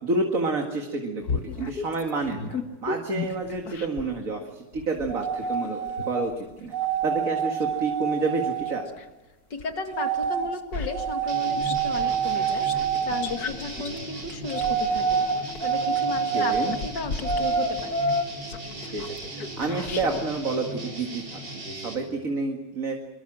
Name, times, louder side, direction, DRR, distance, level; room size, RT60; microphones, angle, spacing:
voice 1, 0.0-5.8 6.1-6.7 7.0-8.9 16.3-16.8 18.9-19.0 19.6-21.4 21.7-23.0, right 3 dB, 50° right, 2 dB, 2.4 m, -29 dB
sound 1, 1.2-4.2 4.7-9.1 9.6-20.3, left 5 dB, 60° left, 2.0 m, -37 dB
sound 2, 5.1-6.2 6.7-8.8 9.9-10.5 10.9-13.4 14.5-16.8 17.2-18.2, right 6 dB, 25° right, 2.7 m, -26 dB
voice 2, 9.5-12.7 13.0-15.3 15.6-17.9, left 4 dB, 75° left, 5 dB, 3.2 m, -34 dB
sound 3, 11.3-22.0, right 1 dB, 80° right, 4.9 m, -38 dB
24.0 x 23.5 x 7.6 m, 1.1 s
omnidirectional pair, 1.9 m